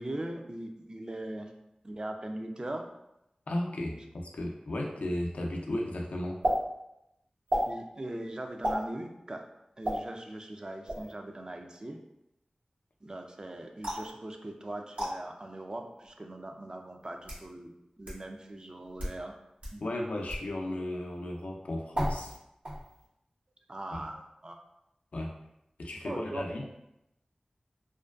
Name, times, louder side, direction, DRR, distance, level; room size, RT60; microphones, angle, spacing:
voice 1, 0.0-1.5 1.8-2.8 7.7-9.4 9.8-12.0 13.0-17.7 18.0-19.4 19.7-19.9 23.7-24.6 26.0-26.7, right 1 dB, 35° right, 3 dB, 0.3 m, -40 dB
voice 2, 3.5-6.4 19.8-22.3 23.9-24.0 25.1-25.3 25.8-26.7, left 1 dB, 85° left, 0 dB, 0.4 m, -35 dB
sound 1, 6.4-6.6 7.5-7.7 8.6-8.8 9.8-10.0 10.9-11.1 13.8-14.1 14.9-15.1 16.1-16.2 17.0-17.4 18.0-18.1 18.9-19.2 19.6-19.7 20.3-20.5 21.9-22.4 22.6-23.0, equal, 80° right, 1.1 m, -31 dB
2.4 x 2.2 x 2.3 m, 0.85 s
wide cardioid pair, 60°, 2 cm